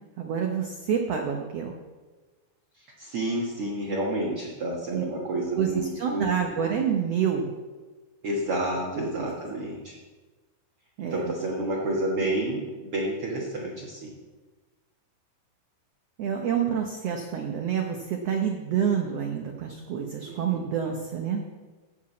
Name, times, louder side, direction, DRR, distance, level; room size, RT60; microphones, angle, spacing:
voice 1, 0.2-1.8 4.9-5.0 5.5-7.5 8.9-9.3 11.0-11.3 16.2-21.4, right 8 dB, 75° right, 2 dB, 1.4 m, -28 dB
voice 2, 2.8-6.4 8.2-9.9 11.0-14.1 20.2-20.6, right 1 dB, 50° right, -3 dB, 2.0 m, -30 dB
13.0 x 4.9 x 8.3 m, 1.3 s
omnidirectional pair, 4.0 m